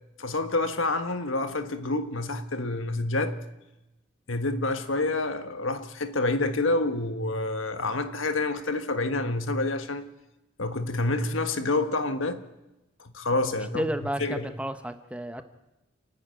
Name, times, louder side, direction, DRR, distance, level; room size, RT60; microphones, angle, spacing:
voice 1, 0.2-3.4 4.3-10.1 10.6-12.4 13.0-13.9 14.2-14.5, left 2 dB, 75° left, 1.5 m, -28 dB
voice 2, 13.7-15.4, right 1 dB, 5° right, 1.0 m, -32 dB
29.5 x 10.0 x 9.3 m
head